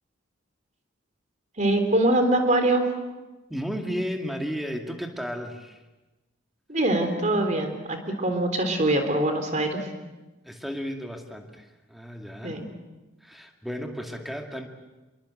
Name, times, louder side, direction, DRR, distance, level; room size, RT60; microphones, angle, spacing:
voice 1, 1.6-2.8 6.7-9.9 12.4-12.7, right 1 dB, 35° right, 6 dB, 3.6 m, -23 dB
voice 2, 3.5-5.8 10.4-12.6 13.2-14.7, equal, ahead, 3 dB, 2.3 m, -34 dB
26.5 x 23.0 x 7.9 m, 1.1 s
head